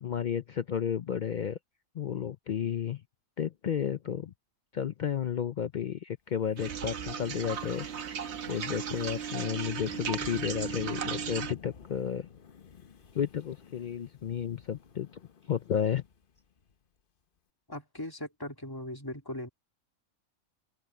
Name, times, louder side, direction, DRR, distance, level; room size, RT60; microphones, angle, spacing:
voice 1, 0.0-1.6 1.9-3.0 3.4-4.3 4.7-7.9 8.5-12.3 13.1-15.1 15.5-16.0, left 8 dB, 75° left, 0.4 m, -32 dB
Wind, 6.4-16.7, left 7 dB, 45° left, 1.0 m, -50 dB
sound 1, 6.6-11.5, right 7 dB, 55° right, 1.2 m, -36 dB
voice 2, 17.7-19.5, left 1 dB, 15° left, 2.5 m, -39 dB
open air
omnidirectional pair, 1.4 m